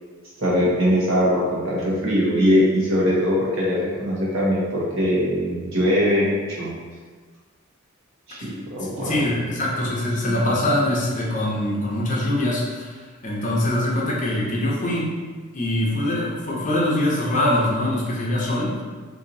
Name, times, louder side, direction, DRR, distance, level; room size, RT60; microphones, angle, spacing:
voice 1, 0.4-6.7 8.3-9.3 10.3-10.5, equal, 70° right, -6 dB, 1.1 m, -21 dB
voice 2, 8.4-13.0 13.2-15.1 15.5-18.8, left 1 dB, 40° left, -4 dB, 0.7 m, -23 dB
2.9 x 2.6 x 3.8 m, 1.5 s
head